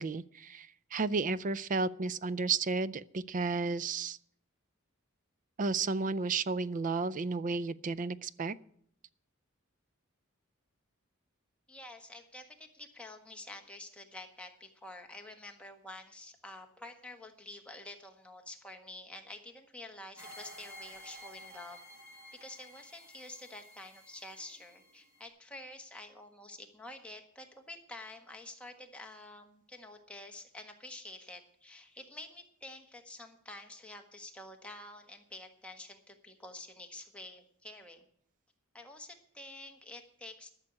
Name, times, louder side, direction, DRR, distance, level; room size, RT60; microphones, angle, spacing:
voice 1, 0.0-4.2 5.6-8.6, right 4 dB, 40° right, 19 dB, 0.4 m, -32 dB
voice 2, 11.7-21.8 22.3-38.0 38.7-40.5, left 2 dB, 5° left, 3 dB, 1.5 m, -49 dB
sound 1, 20.2-25.3, equal, 15° right, 5.1 m, -52 dB
13.0 x 6.5 x 9.5 m, 0.65 s
head